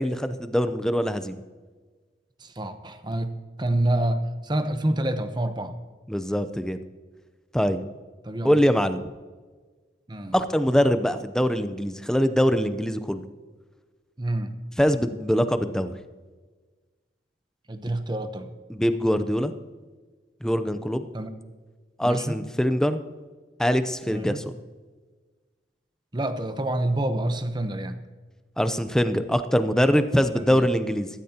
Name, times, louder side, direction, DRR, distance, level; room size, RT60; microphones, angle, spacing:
voice 1, 0.0-1.4 6.1-6.8 7.5-7.8 8.4-9.0 10.3-13.2 14.8-15.9 18.7-19.5 20.4-21.0 22.0-23.0 23.6-24.4 28.6-31.1, equal, 5° left, 10 dB, 0.6 m, -23 dB
voice 2, 2.4-3.3 3.6-5.8 8.2-8.6 10.1-10.3 14.2-14.5 17.7-18.5 21.1-21.3 22.0-22.4 24.1-24.4 26.1-28.0 30.3-30.7, right 1 dB, 25° right, 9 dB, 0.9 m, -27 dB
15.5 x 14.0 x 2.9 m, 1.4 s
head